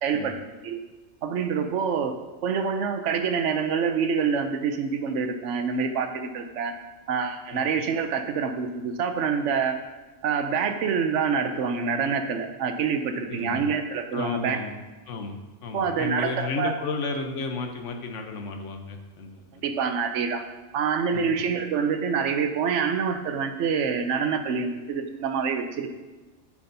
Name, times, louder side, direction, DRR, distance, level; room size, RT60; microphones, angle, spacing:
voice 1, 0.0-0.4 0.6-0.8 1.2-6.7 7.1-9.8 10.2-14.6 15.7-16.7 19.6-20.4 20.7-25.9, right 6 dB, 75° right, 7 dB, 1.0 m, -26 dB
voice 2, 13.3-13.6 14.1-14.8 15.1-19.5 21.1-21.3, left 3 dB, 80° left, 5 dB, 1.1 m, -33 dB
8.2 x 5.9 x 2.7 m, 1.2 s
omnidirectional pair, 1.3 m